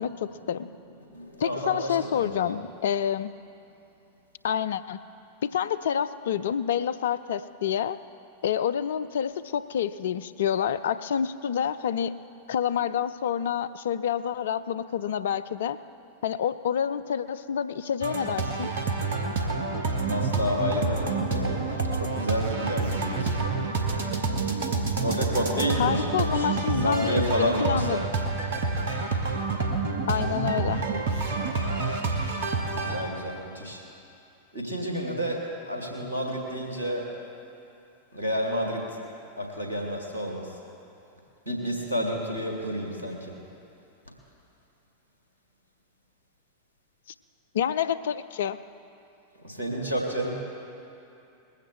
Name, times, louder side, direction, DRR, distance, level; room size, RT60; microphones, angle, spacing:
voice 1, 0.1-2.6 20.1-23.6 25.0-28.1 32.7-33.8 34.5-37.1 38.1-39.0 39.4-40.5 41.5-43.3 49.4-50.3, equal, 80° right, -1 dB, 2.7 m, -30 dB
voice 2, 1.4-3.3 4.4-5.0 5.4-8.0 8.4-12.1 12.5-15.8 16.2-18.7 25.8-28.0 30.1-30.8 47.5-48.6, left 8 dB, 60° left, 14 dB, 0.4 m, -28 dB
sound 1, 18.0-33.0, right 3 dB, 65° right, 1.4 m, -28 dB
20.5 x 15.5 x 3.4 m, 2.7 s
figure-of-eight pair, 90°, 0 cm